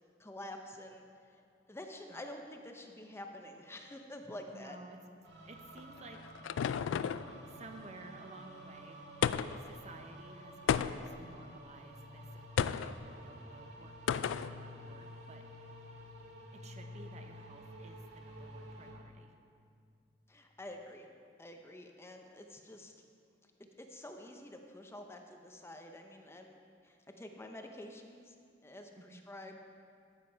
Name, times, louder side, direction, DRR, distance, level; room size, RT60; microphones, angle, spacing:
voice 1, 0.2-4.8 20.3-21.1 21.4-22.9 23.8-26.6 26.8-28.3 28.6-29.6, left 1 dB, 15° left, 4 dB, 0.6 m, -48 dB
voice 2, 4.5-5.0 5.4-6.2 7.5-9.0 9.5-15.5 16.5-19.3 29.0-29.2, right 2 dB, 35° right, 5 dB, 0.7 m, -54 dB
sound 1, 5.2-18.9, equal, 65° right, 2.0 m, -51 dB
sound 2, 5.8-7.3 9.2-9.7 10.7-11.2 12.6-12.9 14.1-14.5, left 8 dB, 80° left, 0.3 m, -32 dB
13.5 x 7.4 x 4.5 m, 2.3 s
head